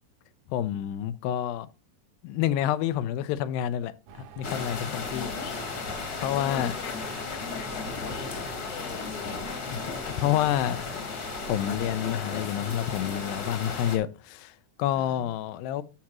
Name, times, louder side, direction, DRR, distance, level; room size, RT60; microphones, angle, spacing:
voice 1, 0.5-1.7 2.2-3.9 4.4-5.3 6.2-6.7 10.2-11.0 11.5-14.5 14.8-15.8, left 11 dB, 90° left, 2.4 m, -28 dB
sound 1, 4.1-12.0, right 5 dB, 70° right, 1.9 m, -45 dB
sound 2, 4.4-14.0, left 4 dB, 50° left, 1.2 m, -35 dB
voice 2, 5.3-5.6 6.3-10.0 13.6-13.9 14.9-15.4, left 8 dB, 70° left, 2.0 m, -43 dB
12.0 x 6.0 x 2.9 m
omnidirectional pair, 4.1 m